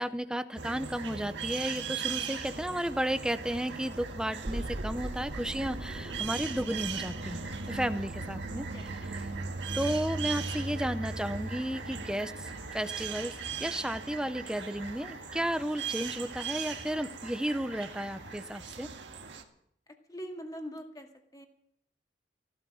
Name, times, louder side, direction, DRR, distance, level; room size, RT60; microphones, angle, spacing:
voice 1, 0.0-8.7 9.7-18.9, equal, 5° right, 11 dB, 0.7 m, -33 dB
sound 1, 0.6-19.4, right 4 dB, 75° right, 1.8 m, -38 dB
sound 2, 4.4-10.4 10.7-10.8, right 1 dB, 40° right, 0.7 m, -43 dB
sound 3, 7.9-18.3, left 1 dB, 65° left, 7.9 m, -55 dB
voice 2, 8.5-9.2 19.9-21.5, equal, 20° left, 4 dB, 2.0 m, -44 dB
15.5 x 12.5 x 6.3 m, 0.73 s
head